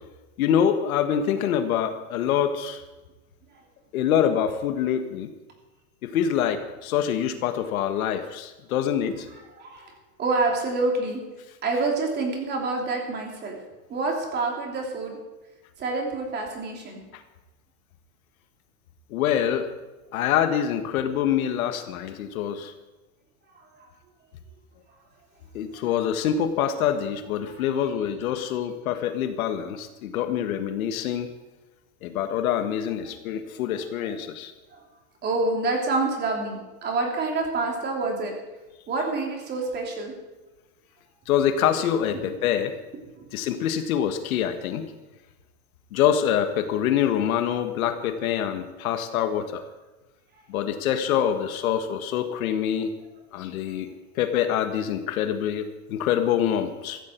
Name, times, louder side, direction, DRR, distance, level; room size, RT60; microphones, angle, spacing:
voice 1, 0.4-2.8 3.9-5.3 6.0-9.3 19.1-19.7 20.1-22.7 25.5-31.3 32.0-34.5 41.3-42.7 43.3-44.9 45.9-49.6 50.5-52.9 53.3-53.9 54.1-57.0, left 9 dB, 70° left, 8 dB, 1.7 m, -25 dB
voice 2, 9.3-11.2 11.6-13.6 13.9-15.2 15.8-17.0 23.5-23.9 27.4-27.7 34.0-34.1 34.7-34.8 35.2-38.3 38.9-40.1 42.1-42.2 43.2-43.3 53.7-53.8, right 3 dB, 25° right, 1 dB, 3.3 m, -28 dB
15.0 x 14.5 x 4.6 m, 1.1 s
supercardioid pair, 155°, 44 cm